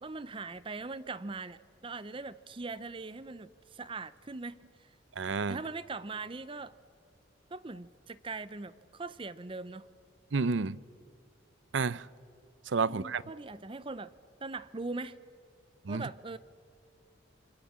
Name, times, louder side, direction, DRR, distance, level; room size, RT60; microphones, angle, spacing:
voice 1, 0.0-4.9 5.5-6.8 7.5-9.9 12.8-14.1 14.4-15.2 15.9-16.4, right 3 dB, 30° right, 0.6 m, -41 dB
voice 2, 5.2-5.6 10.3-10.8 11.7-12.1 12.7-13.2 15.8-16.0, right 4 dB, 75° right, 0.6 m, -30 dB
28.5 x 24.0 x 7.3 m
head